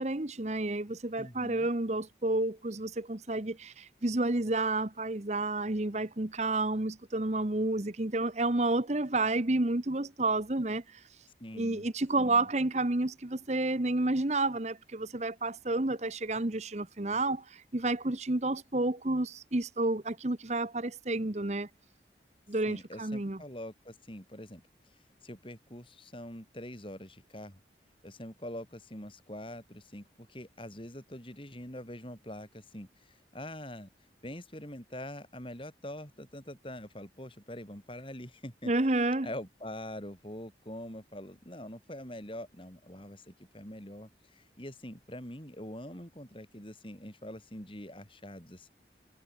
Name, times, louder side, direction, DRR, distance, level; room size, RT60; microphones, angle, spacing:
voice 1, 0.0-11.0 11.5-21.7 22.5-23.4 38.6-39.3, right 2 dB, 40° right, 1.1 m, -30 dB
voice 2, 1.2-1.7 11.4-11.8 12.2-12.5 22.6-24.6 25.2-27.6 28.0-33.9 34.2-38.7 39.2-48.7, left 1 dB, 30° left, 6.7 m, -44 dB
head